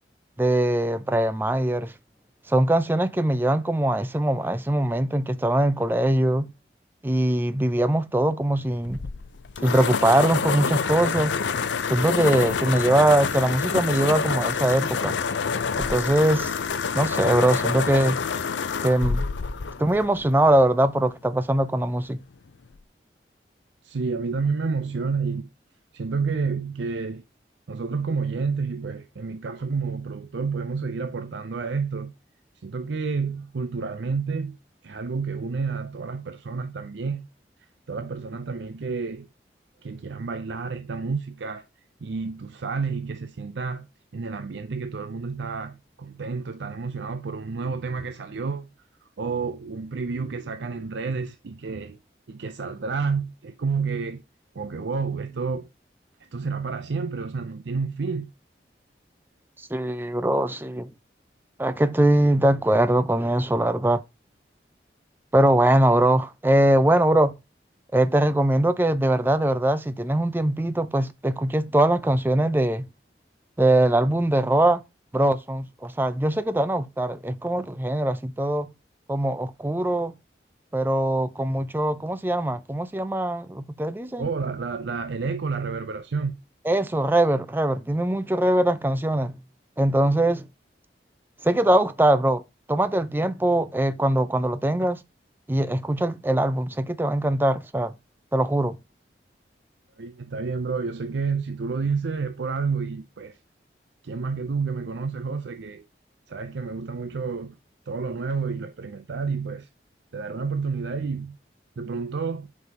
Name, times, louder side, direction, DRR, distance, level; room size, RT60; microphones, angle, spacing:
voice 1, 0.4-1.9 2.5-6.5 7.0-9.0 9.6-11.4 11.9-15.2 15.8-16.5 16.9-18.2 18.8-19.3 19.8-22.2 59.7-60.9 61.6-64.0 65.3-67.3 67.9-72.9 73.6-74.8 75.1-78.7 79.1-80.1 80.7-84.3 86.7-89.4 89.8-90.5 91.4-92.4 92.7-95.0 95.5-97.9 98.3-98.8, right 1 dB, 10° right, 0.4 m, -22 dB
sound 1, 8.8-20.7, left 5 dB, 85° left, 0.5 m, -27 dB
voice 2, 23.8-25.5 25.9-27.2 27.7-32.1 32.6-34.6 34.8-37.3 37.6-39.3 39.8-41.7 42.0-43.9 44.1-48.7 49.2-52.0 52.3-54.2 54.5-55.7 56.3-58.3 84.2-86.4 100.0-103.4 104.0-105.8 106.3-107.6 107.9-109.7 110.1-111.4 111.8-112.5, right 4 dB, 80° right, 0.5 m, -30 dB
7.7 x 5.4 x 2.8 m
head